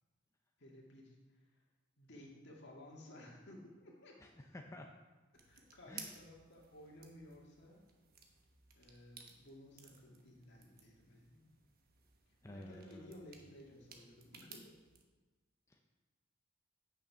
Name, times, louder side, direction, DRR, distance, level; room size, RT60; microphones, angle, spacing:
voice 1, 0.6-1.6 2.0-4.1 5.4-7.8 8.7-11.5 12.3-14.7, left 1 dB, 60° left, -1 dB, 2.1 m, -56 dB
voice 2, 4.2-4.9 5.9-6.1 12.4-13.2 15.7-15.8, left 1 dB, 15° left, 2 dB, 0.6 m, -52 dB
sound 1, 5.3-15.0, right 6 dB, 50° right, 1.2 m, -58 dB
8.7 x 6.7 x 5.6 m, 1.2 s
head